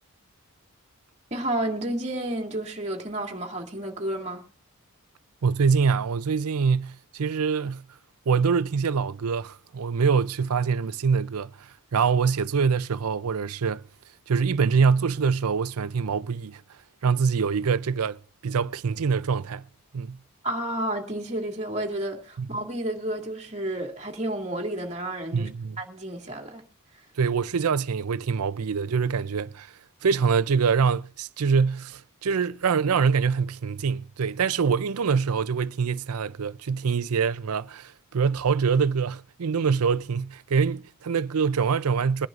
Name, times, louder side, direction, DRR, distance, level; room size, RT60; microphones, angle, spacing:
voice 1, 1.3-4.4 20.4-25.5 25.8-26.7, right 1 dB, 30° right, 2.2 m, -31 dB
voice 2, 5.4-7.8 8.3-13.8 14.3-16.6 17.0-19.7 19.9-20.2 22.4-22.5 25.3-25.8 27.2-29.7 30.0-42.3, right 5 dB, 75° right, 0.5 m, -24 dB
22.0 x 10.5 x 2.5 m
head